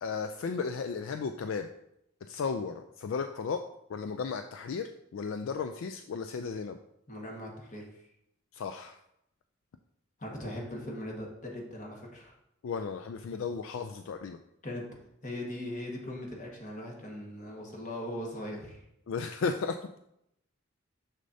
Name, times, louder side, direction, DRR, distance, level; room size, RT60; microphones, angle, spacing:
voice 1, 0.0-1.7 2.3-3.6 3.9-6.8 8.5-9.0 12.6-14.4 19.1-20.0, left 5 dB, 70° left, 7 dB, 0.4 m, -34 dB
voice 2, 7.1-8.1 10.2-12.3 14.6-14.8 15.2-18.8, left 1 dB, 40° left, -1 dB, 1.5 m, -39 dB
6.6 x 6.4 x 2.7 m, 0.79 s
head